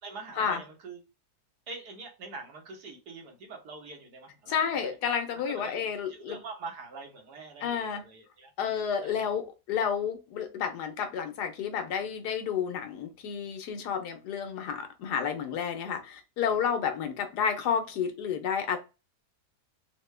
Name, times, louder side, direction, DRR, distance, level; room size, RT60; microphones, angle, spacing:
voice 1, 0.0-1.0 1.7-4.9 5.5-8.5 9.0-9.3, right 3 dB, 80° right, 1.5 m, -44 dB
voice 2, 4.5-6.4 7.6-8.0 8.6-18.8, left 7 dB, 90° left, 1.3 m, -31 dB
3.6 x 2.2 x 3.2 m
omnidirectional pair, 1.7 m